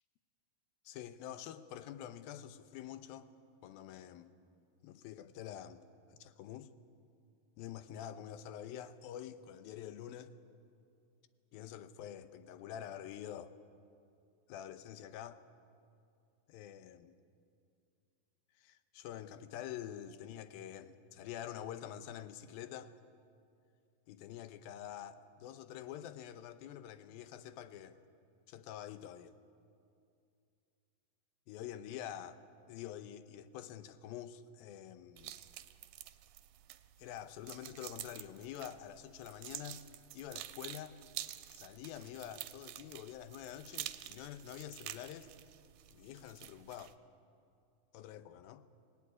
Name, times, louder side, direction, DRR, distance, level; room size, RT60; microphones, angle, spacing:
voice 1, 0.9-3.3 3.6-4.3 4.8-5.8 6.1-6.7 7.6-10.3 11.5-13.6 14.5-15.4 16.5-17.2 18.6-22.9 24.1-28.0 28.5-29.4 31.5-32.4 32.7-35.3 37.0-39.8 40.1-41.0 41.5-45.3 45.9-47.0 47.9-48.6, left 10 dB, 85° left, 2.7 m, -47 dB
sound 1, 35.2-46.9, right 13 dB, 85° right, 2.5 m, -49 dB
25.5 x 18.0 x 9.7 m
omnidirectional pair, 4.1 m